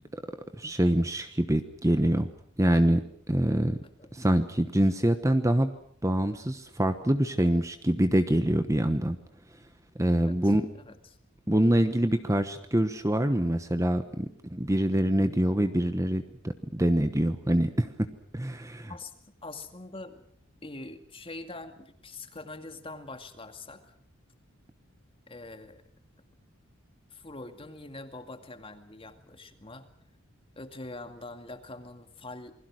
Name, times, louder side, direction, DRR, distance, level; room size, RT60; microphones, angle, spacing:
voice 1, 0.6-2.3 2.6-3.0 3.3-3.8 4.1-5.7 6.0-9.2 10.0-10.6 11.5-18.1 18.3-18.9, right 1 dB, 15° right, 9 dB, 1.1 m, -25 dB
voice 2, 10.3-11.2 18.9-19.1 19.4-20.2 20.6-23.9 25.3-25.8 27.1-29.9 30.6-32.5, left 2 dB, 25° left, 7 dB, 2.2 m, -44 dB
28.0 x 21.5 x 6.4 m, 0.63 s
head